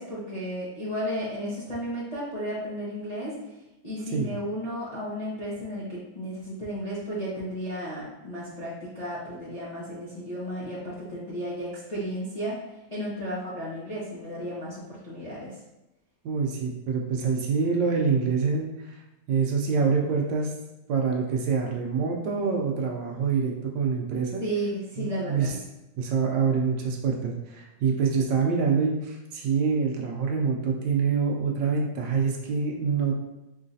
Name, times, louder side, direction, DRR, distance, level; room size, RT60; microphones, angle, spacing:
voice 1, 0.0-3.4 3.8-12.6 12.9-15.5 24.4-25.6, equal, 35° left, -9 dB, 0.6 m, -33 dB
voice 2, 16.2-19.0 19.3-20.5 20.9-24.4 25.0-25.5 26.0-33.2, right 5 dB, 75° right, 1 dB, 1.2 m, -26 dB
4.6 x 3.2 x 2.7 m, 0.97 s
omnidirectional pair, 2.1 m